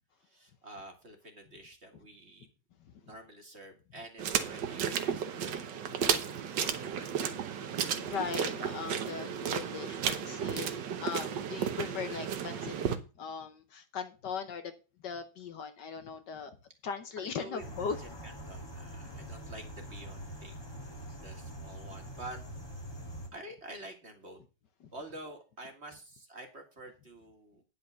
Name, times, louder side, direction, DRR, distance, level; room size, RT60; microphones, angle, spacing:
voice 1, 0.2-2.5 3.0-5.9 6.8-7.3 17.4-17.6 18.0-22.4 23.3-24.4 24.9-27.6, right 1 dB, 35° right, 2.2 m, -49 dB
sound 1, 4.2-13.0, right 8 dB, 65° right, 1.6 m, -33 dB
voice 2, 6.6-7.0 7.9-12.7 13.2-14.7 15.0-16.6 16.8-18.0 19.1-19.2 24.8-24.9, left 6 dB, 65° left, 1.4 m, -39 dB
sound 2, 17.6-23.3, equal, 15° left, 1.3 m, -44 dB
10.0 x 5.8 x 6.5 m
omnidirectional pair, 2.2 m